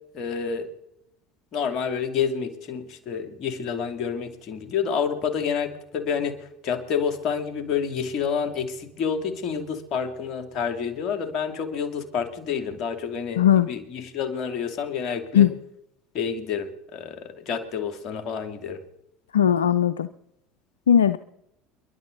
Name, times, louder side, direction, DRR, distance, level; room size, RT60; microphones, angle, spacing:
voice 1, 0.1-0.7 1.5-15.5 16.1-18.8, left 6 dB, 50° left, 7 dB, 2.9 m, -29 dB
voice 2, 13.4-13.7 15.3-15.5 19.3-20.1 20.9-21.2, left 9 dB, 85° left, 14 dB, 0.5 m, -18 dB
29.5 x 11.5 x 4.1 m, 0.84 s
hypercardioid pair, 70°, 0 cm